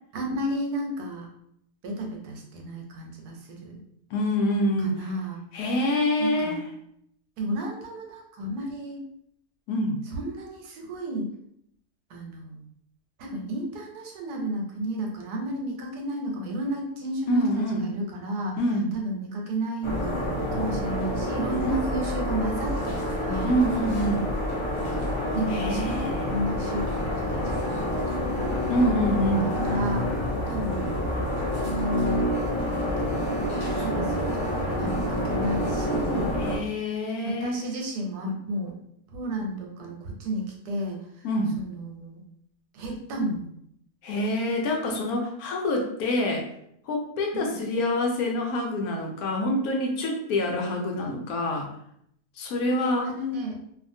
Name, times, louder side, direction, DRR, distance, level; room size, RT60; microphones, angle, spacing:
voice 1, 0.1-1.3 1.8-3.8 4.8-5.4 6.2-6.6 7.4-9.0 10.1-11.3 12.1-12.6 13.2-18.6 18.9-23.5 24.7-28.0 28.3-28.6 29.4-30.1 30.5-31.0 31.6-32.3 32.8-33.2 33.8-36.3 37.4-38.8 39.1-41.3 41.6-42.2 42.7-43.5 47.3-47.6 53.0-53.6, right 1 dB, 85° right, 1 dB, 1.2 m, -32 dB
voice 2, 4.1-5.1 5.5-6.6 9.7-10.0 17.3-17.9 18.6-18.9 21.6-21.8 23.4-24.3 25.5-26.2 28.7-29.5 36.4-37.6 41.2-41.6 44.0-46.4 46.9-51.7 52.4-53.1, left 1 dB, 75° left, 1 dB, 1.0 m, -26 dB
sound 1, 19.8-36.6, equal, 50° left, 0.3 m, -28 dB
2.7 x 2.4 x 2.6 m, 0.72 s
omnidirectional pair, 1.7 m